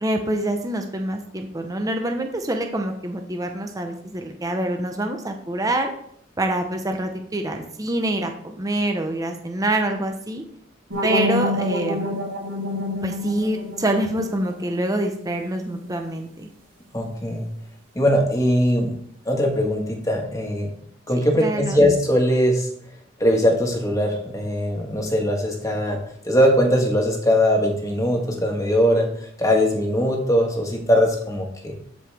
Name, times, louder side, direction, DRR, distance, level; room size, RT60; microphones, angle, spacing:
voice 1, 0.0-5.9 6.4-10.4 11.0-12.2 13.0-16.5 21.1-21.8, right 1 dB, 20° right, 4 dB, 0.7 m, -26 dB
sound 1, 10.9-15.8, left 1 dB, 85° right, 3.8 m, -28 dB
voice 2, 16.9-17.5 17.9-18.9 19.2-20.7 21.1-22.7 23.2-26.0 26.2-31.7, equal, 15° left, 1 dB, 1.6 m, -20 dB
13.0 x 4.9 x 3.5 m, 0.65 s
head